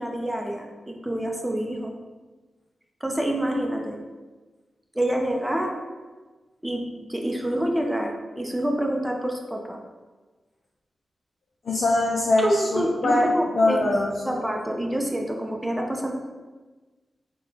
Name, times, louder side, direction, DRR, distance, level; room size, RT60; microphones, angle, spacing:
voice 1, 0.0-1.9 3.0-4.0 4.9-5.7 6.6-9.8 12.4-13.9 14.3-16.1, right 1 dB, 10° right, 1 dB, 0.6 m, -27 dB
voice 2, 11.7-13.3 13.6-14.4, left 2 dB, 70° left, -3 dB, 0.4 m, -22 dB
3.5 x 2.2 x 3.8 m, 1.3 s
cardioid pair, 50°, 0 cm